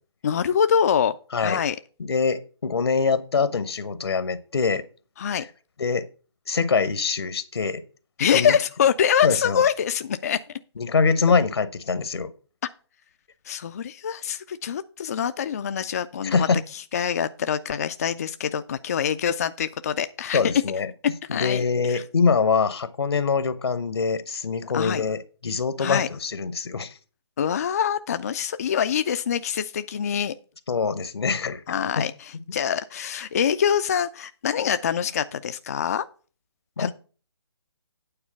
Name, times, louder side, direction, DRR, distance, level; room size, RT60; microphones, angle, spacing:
voice 1, 0.2-1.2 1.4-1.8 5.2-5.5 8.2-10.4 13.5-16.5 16.7-20.5 21.3-22.0 24.7-25.0 25.8-26.1 27.4-30.3 31.7-36.1 36.8-36.9, left 8 dB, 35° left, 11 dB, 0.4 m, -25 dB
voice 2, 2.0-4.8 5.3-5.4 5.8-6.0 6.5-7.8 8.3-8.6 9.2-9.6 10.8-12.3 16.2-16.6 20.3-20.9 21.3-27.0 30.7-31.6 32.0-32.1 36.8-36.9, left 5 dB, 60° left, 13 dB, 0.8 m, -24 dB
8.9 x 4.3 x 6.7 m, 0.38 s
figure-of-eight pair, 145°, 15 cm